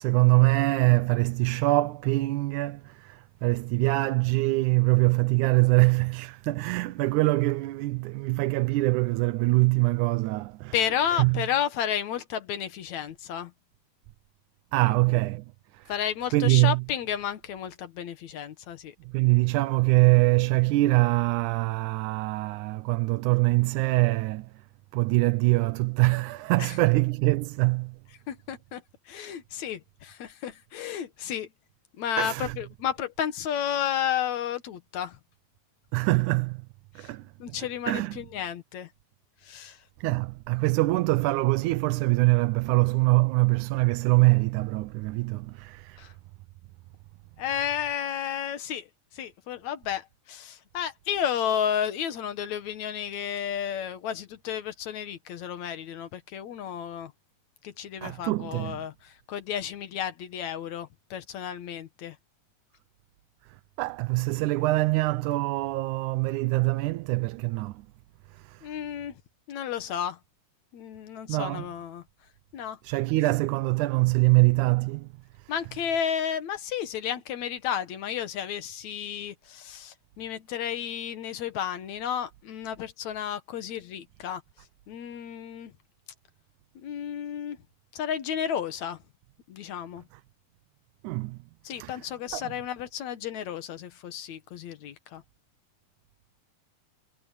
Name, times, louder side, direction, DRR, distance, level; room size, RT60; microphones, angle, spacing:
voice 1, 0.0-10.7 11.1-11.4 14.7-15.5 15.7-15.9 16.3-16.8 19.1-24.5 24.9-28.0 32.2-32.6 35.9-36.7 37.0-37.6 37.9-38.2 40.0-46.1 58.0-58.8 63.5-67.9 68.3-68.7 71.3-71.7 72.8-75.1 75.4-75.5 91.0-91.4 91.8-92.0 92.3-92.5, right 22 dB, 85° right, 2.1 m, -24 dB
voice 2, 10.7-13.5 15.9-18.9 26.6-26.8 28.3-31.5 32.0-35.2 37.0-37.1 37.4-38.9 39.4-39.8 46.0-46.1 47.4-48.9 49.1-57.1 57.6-62.2 68.6-69.2 69.5-70.2 70.7-72.0 72.5-72.8 75.5-84.4 84.9-85.7 86.8-87.6 87.9-89.0 89.5-90.1 91.6-95.2, left 9 dB, 70° left, 2.6 m, -32 dB
omnidirectional pair, 3.4 m